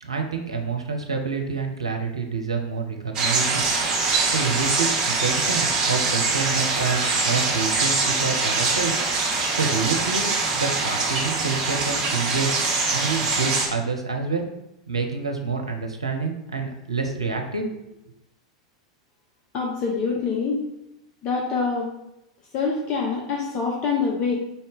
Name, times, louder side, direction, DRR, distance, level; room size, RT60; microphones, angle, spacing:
voice 1, 0.0-3.7 4.3-8.9 9.5-10.3 10.6-12.5 12.9-14.5 14.9-17.7, right 4 dB, 80° right, 3 dB, 0.6 m, -27 dB
sound 1, 3.1-13.7, right 3 dB, 30° right, 1.0 m, -23 dB
voice 2, 19.5-20.6 21.2-21.9 22.5-24.4, left 5 dB, 35° left, -1 dB, 0.6 m, -25 dB
4.3 x 2.7 x 3.4 m, 0.86 s
figure-of-eight pair, 90°, 3 cm